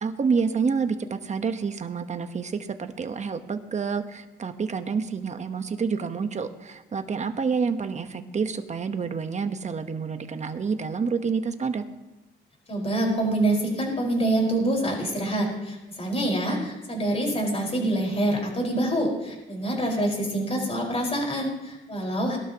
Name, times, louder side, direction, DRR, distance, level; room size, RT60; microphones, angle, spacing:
voice 1, 0.0-11.8, right 5 dB, 35° right, 8 dB, 1.1 m, -28 dB
voice 2, 12.7-22.4, right 1 dB, 30° left, -1 dB, 4.9 m, -26 dB
21.0 x 12.0 x 3.0 m, 1.0 s
cardioid pair, 90°, 20 cm